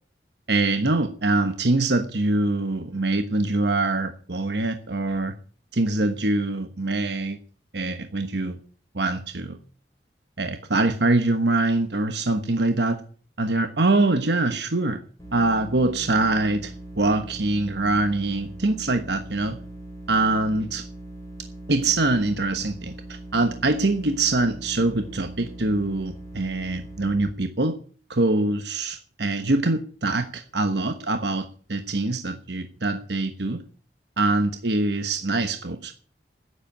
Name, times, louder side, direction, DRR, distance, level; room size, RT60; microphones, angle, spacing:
voice 1, 0.5-5.4 5.7-7.4 7.7-8.6 8.9-9.6 10.4-13.0 13.4-15.0 15.3-19.6 20.1-20.8 21.7-27.8 28.1-33.6 34.2-35.9, right 2 dB, 70° right, 7 dB, 1.2 m, -24 dB
sound 1, 15.2-27.3, right 1 dB, 20° left, 4.4 m, -40 dB
10.5 x 10.0 x 9.9 m, 0.43 s
head